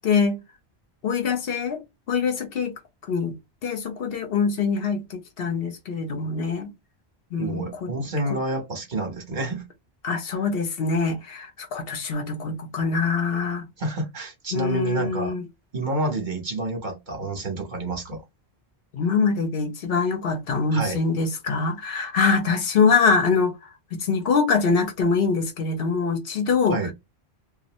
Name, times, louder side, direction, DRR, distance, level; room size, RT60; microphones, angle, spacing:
voice 1, 0.0-0.4 1.0-1.8 2.1-2.7 3.1-3.4 3.6-6.7 7.3-7.9 10.0-13.6 14.5-15.4 18.9-23.5 23.9-26.9, left 5 dB, 70° left, 0.9 m, -24 dB
voice 2, 7.4-9.7 13.8-15.4 15.7-18.2 20.7-21.0 26.7-26.9, right 2 dB, 50° right, 1.1 m, -29 dB
2.6 x 2.3 x 3.0 m
omnidirectional pair, 1.1 m